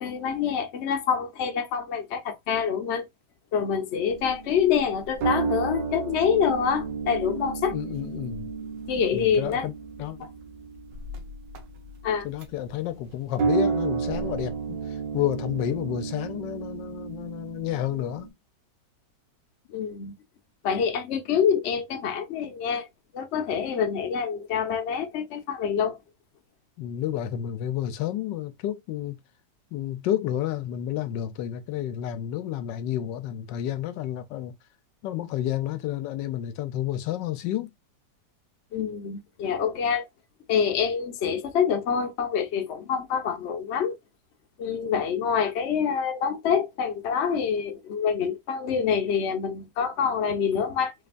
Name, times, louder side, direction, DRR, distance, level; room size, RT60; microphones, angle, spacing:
voice 1, 0.0-3.0 3.5-7.8 8.9-9.7 10.2-10.3 12.0-12.3 19.7-20.1 20.6-22.9 23.1-26.0 38.7-40.0 40.5-44.0 44.6-50.9, left 7 dB, 55° left, 0.8 m, -26 dB
sound 1, 4.1-12.7 13.4-18.3, right 5 dB, 85° right, 1.6 m, -32 dB
voice 2, 7.7-8.5 9.1-9.7 10.0-10.2 12.2-18.3 26.8-29.2 29.7-34.5 35.0-37.7, left 11 dB, 80° left, 1.2 m, -30 dB
4.1 x 3.2 x 2.4 m
omnidirectional pair, 1.9 m